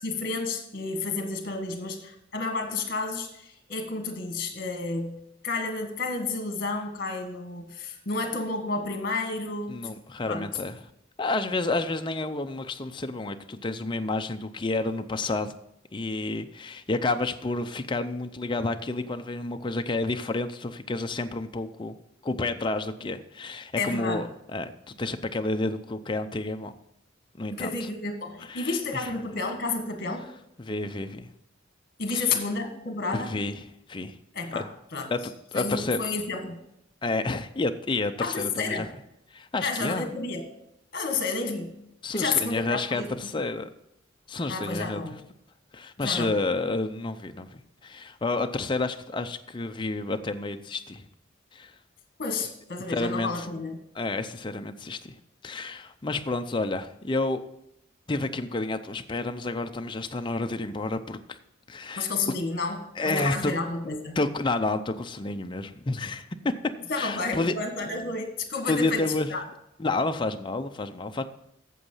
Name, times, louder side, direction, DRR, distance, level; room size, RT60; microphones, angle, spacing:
voice 1, 0.0-9.9 10.2-10.4 23.8-24.3 27.5-30.2 32.0-33.3 34.3-35.1 35.5-36.6 38.2-38.9 39.6-40.4 40.9-41.7 42.1-43.4 44.5-45.2 46.0-46.4 52.2-53.8 62.0-64.2 66.9-69.0 69.3-69.4, left 3 dB, 45° left, 5 dB, 1.6 m, -31 dB
voice 2, 9.7-10.8 11.2-15.5 15.9-21.9 22.2-26.7 27.4-27.7 28.5-29.1 30.6-31.3 32.1-32.3 33.1-33.6 33.9-34.1 34.5-34.6 35.1-35.2 35.5-36.0 37.0-38.9 39.3-40.2 42.0-43.7 44.3-45.0 45.7-47.5 47.8-51.1 51.5-51.7 52.9-53.5 53.9-55.1 55.4-57.4 58.1-61.4 61.7-62.1 63.0-63.5 64.2-66.5 67.0-67.5 68.7-69.3 69.8-71.2, left 2 dB, 25° left, 7 dB, 0.5 m, -30 dB
8.3 x 7.2 x 5.5 m, 0.79 s
head